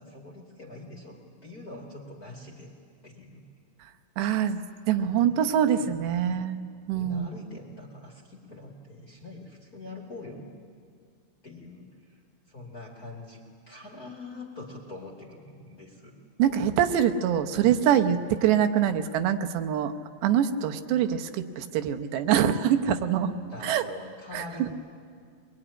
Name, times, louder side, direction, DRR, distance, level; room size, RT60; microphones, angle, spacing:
voice 1, 0.0-2.7 3.0-3.4 5.0-6.3 6.9-10.6 11.4-12.2 12.5-16.2 23.5-24.7, left 2 dB, 30° left, -1 dB, 1.9 m, -44 dB
voice 2, 4.2-6.6 6.9-7.3 16.4-19.9 20.2-23.3 23.6-23.8 24.3-24.7, right 9 dB, 85° right, 8 dB, 3.2 m, -24 dB
23.0 x 22.5 x 9.9 m, 2.2 s
omnidirectional pair, 4.8 m